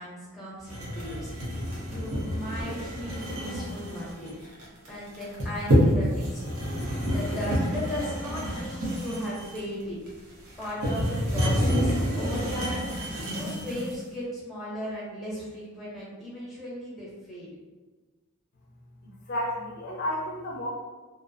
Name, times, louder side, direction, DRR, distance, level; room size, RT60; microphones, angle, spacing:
voice 1, 0.0-4.3 4.9-6.4 7.1-10.0 10.6-12.9 13.3-17.5, left 1 dB, ahead, -7 dB, 0.6 m, -37 dB
sound 1, 0.7-14.0, equal, 80° right, 0.7 m, -28 dB
voice 2, 19.0-20.7, equal, 45° left, -3 dB, 0.4 m, -32 dB
2.6 x 2.1 x 2.4 m, 1.3 s
head